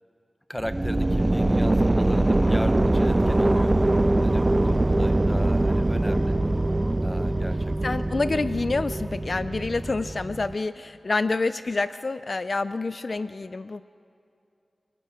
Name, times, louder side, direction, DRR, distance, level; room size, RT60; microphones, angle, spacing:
voice 1, 0.5-3.7 4.2-6.4 7.0-7.7, equal, 10° left, 9 dB, 1.1 m, -36 dB
sound 1, 0.6-10.5, right 2 dB, 25° right, 0.6 m, -23 dB
voice 2, 7.8-13.8, left 3 dB, 55° left, 13 dB, 0.4 m, -27 dB
28.0 x 18.5 x 5.1 m, 2.6 s
cardioid pair, 55°, 0 cm